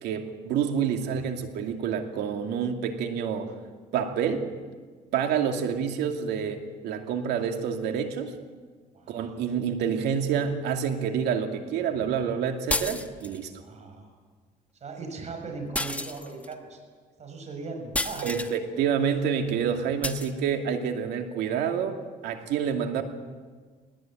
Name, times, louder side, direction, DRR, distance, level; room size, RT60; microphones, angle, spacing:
voice 1, 0.0-3.5 3.9-4.5 5.1-8.3 9.1-13.5 18.2-23.0, right 7 dB, 80° right, 5 dB, 2.5 m, -28 dB
voice 2, 8.9-9.4 13.6-14.1 14.8-16.8 17.2-18.5, right 3 dB, 40° right, 4 dB, 6.5 m, -39 dB
sound 1, 12.7-13.4 15.7-16.5 17.9-18.5 20.0-20.3, left 2 dB, 10° left, 1.2 m, -31 dB
20.0 x 19.5 x 9.0 m, 1.5 s
cardioid pair, 110°, 17 cm